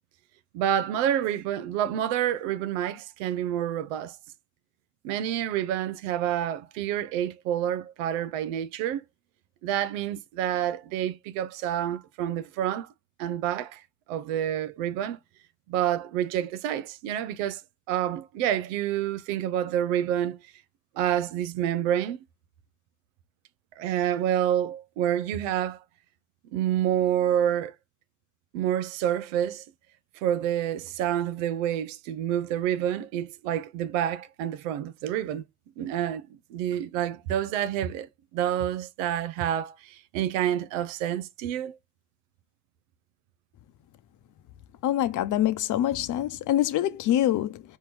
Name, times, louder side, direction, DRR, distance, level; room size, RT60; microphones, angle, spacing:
voice 1, 0.5-4.2 5.0-9.0 9.6-12.9 13.2-13.8 14.1-15.2 15.7-17.6 17.9-20.4 21.0-22.2 23.8-25.8 26.5-27.7 28.5-29.6 30.2-35.4 35.8-36.3 36.5-41.8, right 11 dB, 85° right, 0.6 m, -28 dB
voice 2, 44.8-47.6, left 12 dB, 55° left, 0.7 m, -25 dB
4.5 x 3.0 x 3.3 m
supercardioid pair, 80°, 37 cm